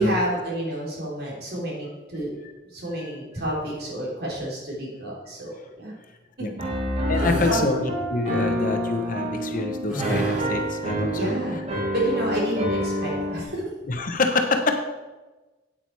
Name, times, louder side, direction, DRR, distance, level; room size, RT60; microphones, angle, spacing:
voice 1, 0.0-2.3 2.7-5.9 7.5-7.6 10.9-11.6 11.9-13.6, right 1 dB, 55° right, -4 dB, 3.5 m, -29 dB
Piano, 6.6-13.4, equal, 35° right, 1.5 m, -27 dB
voice 2, 7.1-11.3 13.9-14.8, left 3 dB, 45° left, 5 dB, 0.9 m, -26 dB
sound 1, 7.1-7.6 9.9-10.6, right 1 dB, 5° right, 3.3 m, -30 dB
8.7 x 8.6 x 4.7 m, 1.2 s
head